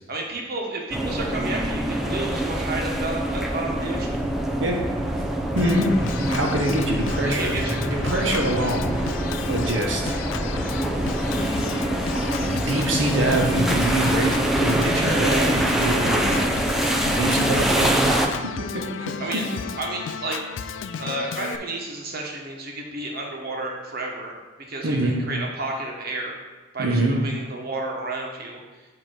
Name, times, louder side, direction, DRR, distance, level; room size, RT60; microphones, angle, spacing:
voice 1, 0.1-4.2 7.2-7.8 19.2-19.4 19.7-20.4 21.0-24.4 24.7-26.3 26.7-28.6, right 2 dB, 55° right, 0 dB, 1.2 m, -31 dB
sound 1, 0.9-18.3, right 1 dB, ahead, 0.5 m, -25 dB
voice 2, 5.5-5.9 6.2-7.5 7.8-8.9 9.5-10.2 12.1-16.4 17.1-19.4 24.8-25.1 26.8-27.2, right 1 dB, 90° right, 0 dB, 1.2 m, -25 dB
Organ, 5.6-21.6, left 6 dB, 75° left, 0.3 m, -34 dB
7.7 x 3.0 x 6.0 m, 1.2 s
head